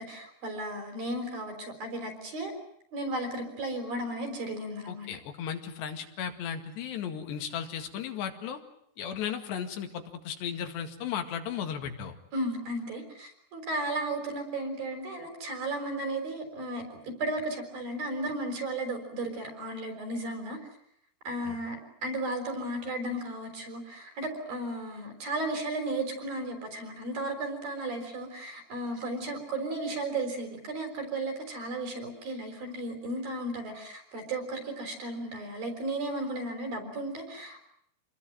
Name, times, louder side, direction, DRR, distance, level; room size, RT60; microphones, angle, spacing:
voice 1, 0.0-2.5 2.9-5.1 12.3-20.6 21.3-37.6, right 2 dB, 60° right, 5 dB, 7.3 m, -34 dB
voice 2, 4.9-8.6 9.0-12.1 21.5-21.6, left 8 dB, 85° left, 6 dB, 4.3 m, -35 dB
27.5 x 21.0 x 9.2 m, 0.70 s
omnidirectional pair, 4.8 m